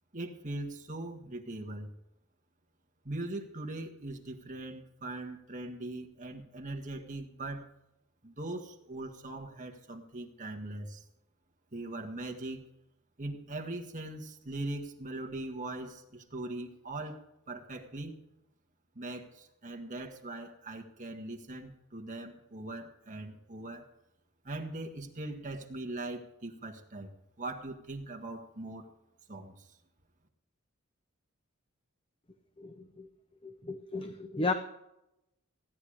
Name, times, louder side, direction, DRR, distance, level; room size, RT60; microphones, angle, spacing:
voice 1, 0.1-1.9 3.0-7.7 8.2-11.0 11.7-12.6 13.2-17.2 17.5-18.1 19.0-23.9 24.4-27.1 27.4-28.9 29.3-29.8, right 2 dB, 35° right, 2 dB, 1.7 m, -40 dB
voice 2, 32.6-33.1 33.4-34.5, left 3 dB, 25° left, 8 dB, 0.7 m, -34 dB
16.5 x 10.5 x 5.0 m, 0.86 s
head